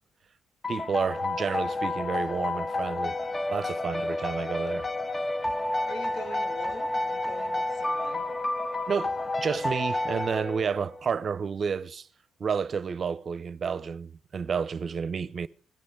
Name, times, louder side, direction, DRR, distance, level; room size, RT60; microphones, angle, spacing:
sound 1, 0.6-11.0, left 2 dB, 20° left, 0.6 m, -30 dB
voice 1, 0.7-3.2 3.5-4.9 8.9-12.1 12.4-15.5, right 6 dB, 45° right, 0.6 m, -30 dB
voice 2, 5.8-8.3, left 1 dB, 75° left, 3.2 m, -43 dB
17.5 x 11.5 x 5.0 m
cardioid pair, 90°, 0 cm